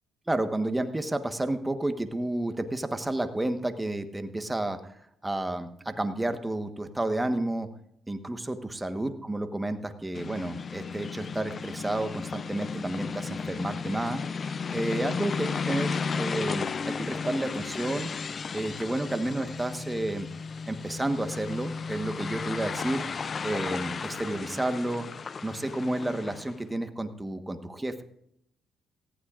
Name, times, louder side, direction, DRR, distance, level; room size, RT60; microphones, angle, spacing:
voice 1, 0.3-5.0 5.2-7.7 8.1-14.2 14.7-18.1 18.5-20.3 20.7-23.0 23.4-25.0 25.4-28.0, right 1 dB, 15° right, 7 dB, 1.3 m, -31 dB
sound 1, 10.1-26.6, left 5 dB, 40° left, 0.4 m, -34 dB
sound 2, 16.5-24.4, left 1 dB, 60° left, 5.9 m, -55 dB
18.5 x 14.5 x 2.5 m, 0.74 s
cardioid pair, 90°, 0 cm